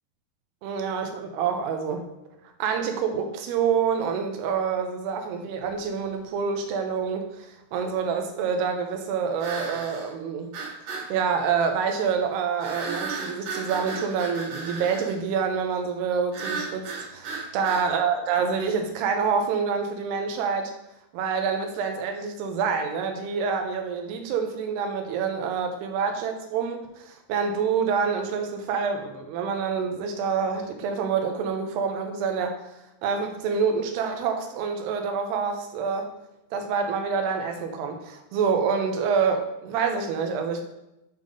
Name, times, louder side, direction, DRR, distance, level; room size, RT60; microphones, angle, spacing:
voice 1, 0.6-2.1 2.6-10.5 11.1-20.7 21.1-32.6 33.0-36.1 36.5-40.6, right 6 dB, 90° right, 5 dB, 2.8 m, -27 dB
sound 1, 5.7-5.8 9.4-10.1 10.5-11.1 12.6-15.2 16.3-17.9, right 4 dB, 70° right, 3.9 m, -34 dB
9.0 x 3.6 x 5.2 m, 0.90 s
omnidirectional pair, 4.8 m